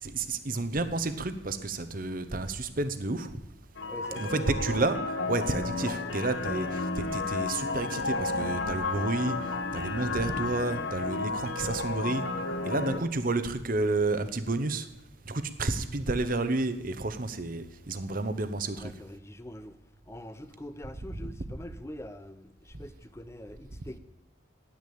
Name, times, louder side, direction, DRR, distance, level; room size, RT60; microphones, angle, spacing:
voice 1, 0.0-3.3 4.2-5.0 5.3-9.4 9.7-12.2 12.7-14.9 15.3-18.9, right 2 dB, 45° right, 0.9 m, -30 dB
sound 1, 3.8-13.0, left 3 dB, 65° left, 1.1 m, -32 dB
voice 2, 3.9-4.5 12.6-13.0 18.7-19.8 20.0-24.0, equal, 15° left, 0.6 m, -44 dB
10.5 x 9.6 x 8.6 m
head